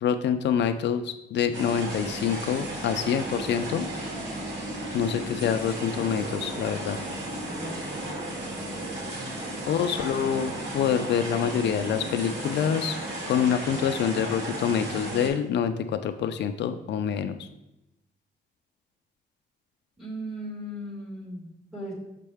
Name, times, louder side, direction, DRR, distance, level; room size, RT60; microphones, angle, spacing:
voice 1, 0.0-3.9 4.9-7.0 9.7-12.9 13.3-17.5, left 8 dB, 80° left, 9 dB, 0.4 m, -26 dB
sound 1, 1.5-15.3, right 1 dB, 85° right, 1.8 m, -34 dB
voice 2, 7.5-8.1 20.0-21.9, equal, ahead, -5 dB, 2.0 m, -38 dB
6.7 x 5.4 x 3.4 m, 0.89 s
wide cardioid pair, 180°, 18 cm